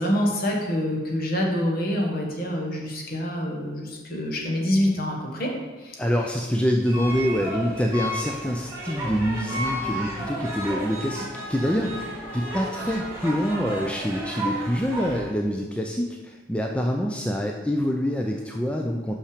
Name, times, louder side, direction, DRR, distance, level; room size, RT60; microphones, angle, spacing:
voice 1, 0.0-5.5 5.8-6.0, equal, 50° left, -1 dB, 1.3 m, -26 dB
voice 2, 6.0-12.0 12.3-19.2, equal, 5° left, 1 dB, 0.4 m, -26 dB
sound 1, 6.9-15.2, right 1 dB, 15° right, 1.8 m, -33 dB
5.7 x 5.7 x 5.0 m, 1.3 s
head